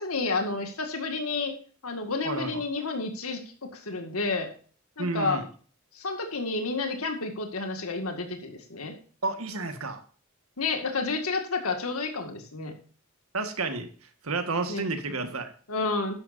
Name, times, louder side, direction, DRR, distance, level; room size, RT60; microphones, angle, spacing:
voice 1, 0.0-1.5 1.8-4.5 5.0-5.4 5.9-8.9 10.6-12.7 14.7-14.8 15.7-16.2, left 3 dB, 85° left, 5 dB, 2.1 m, -30 dB
voice 2, 2.2-2.6 5.0-5.5 9.2-10.0 13.3-15.5, right 3 dB, 80° right, 7 dB, 1.8 m, -31 dB
12.5 x 10.5 x 2.7 m, 0.42 s
head